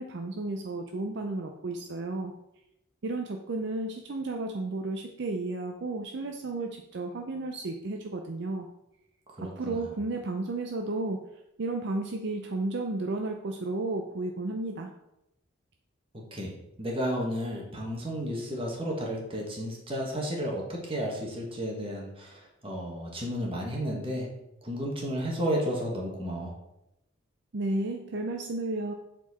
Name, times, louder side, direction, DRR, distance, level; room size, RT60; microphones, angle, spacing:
voice 1, 0.0-2.3 3.0-8.7 9.4-11.2 11.6-14.9 27.5-28.9, right 2 dB, 55° right, 3 dB, 0.5 m, -33 dB
voice 2, 9.3-9.9 16.3-16.5 16.8-24.3 24.6-26.5, equal, 25° right, -1 dB, 1.5 m, -32 dB
7.2 x 4.4 x 4.2 m, 0.86 s
head